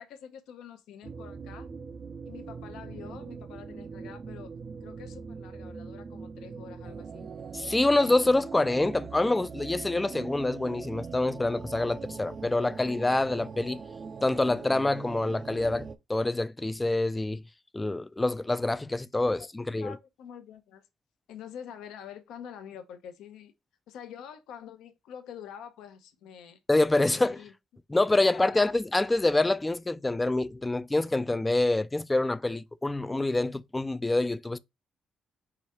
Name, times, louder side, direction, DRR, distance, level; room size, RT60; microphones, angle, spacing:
voice 1, 0.0-1.7 2.2-4.5 4.8-7.3 19.3-19.5 19.8-20.8 21.3-23.5 23.9-26.6 27.1-27.5 28.2-28.7, left 8 dB, 85° left, 0.7 m, -46 dB
sound 1, 1.0-16.0, right 5 dB, 45° right, 0.5 m, -41 dB
voice 2, 7.5-13.8 14.2-17.4 17.7-20.0 26.7-27.4 27.9-34.6, left 2 dB, 15° left, 0.3 m, -26 dB
4.8 x 2.3 x 4.3 m
cardioid pair, 90°, 0 cm